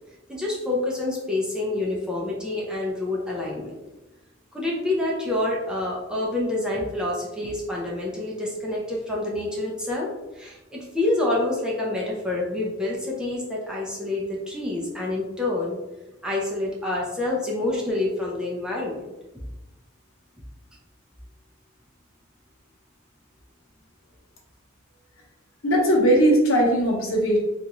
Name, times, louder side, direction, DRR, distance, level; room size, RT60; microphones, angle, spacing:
voice 1, 0.3-3.8 4.5-10.1 10.3-15.8 16.2-19.0, left 2 dB, 5° right, -4 dB, 0.6 m, -27 dB
voice 2, 25.6-27.4, right 1 dB, 75° left, -1 dB, 0.9 m, -19 dB
3.4 x 2.5 x 2.9 m, 1.0 s
head